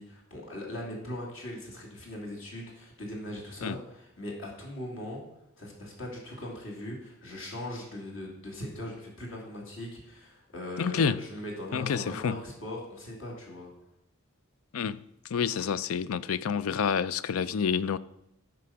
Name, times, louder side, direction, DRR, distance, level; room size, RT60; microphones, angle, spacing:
voice 1, 0.0-5.2 5.6-13.7, left 1 dB, 70° left, 2.6 m, -40 dB
voice 2, 10.8-11.2 11.7-12.4 14.7-15.0 15.3-18.0, left 6 dB, 90° left, 0.4 m, -28 dB
13.0 x 5.1 x 5.8 m
head